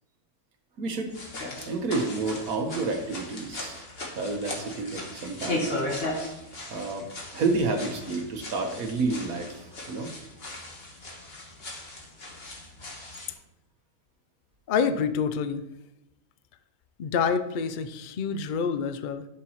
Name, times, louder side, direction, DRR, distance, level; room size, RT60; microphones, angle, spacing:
voice 1, 0.8-1.1 1.6-3.8 4.2-5.7 6.6-7.0 7.3-10.1, right 3 dB, 75° right, 4 dB, 1.6 m, -30 dB
sound 1, 1.1-13.3, left 1 dB, 40° left, 1.6 m, -37 dB
voice 2, 14.7-15.6 17.0-19.3, left 6 dB, 85° left, 11 dB, 0.4 m, -27 dB
11.5 x 6.1 x 3.0 m, 0.87 s
omnidirectional pair, 1.6 m